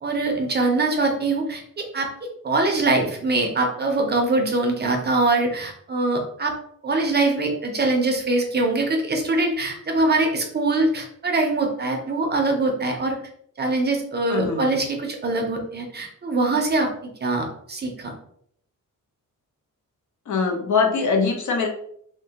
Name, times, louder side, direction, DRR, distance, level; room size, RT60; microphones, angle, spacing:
voice 1, 0.0-2.1 2.4-6.5 6.8-13.2 13.6-18.1, right 2 dB, 30° right, 2 dB, 0.4 m, -23 dB
voice 2, 14.3-14.7 20.3-21.7, left 5 dB, 65° left, 3 dB, 0.6 m, -22 dB
2.7 x 2.2 x 2.7 m, 0.67 s
wide cardioid pair, 150°, 33 cm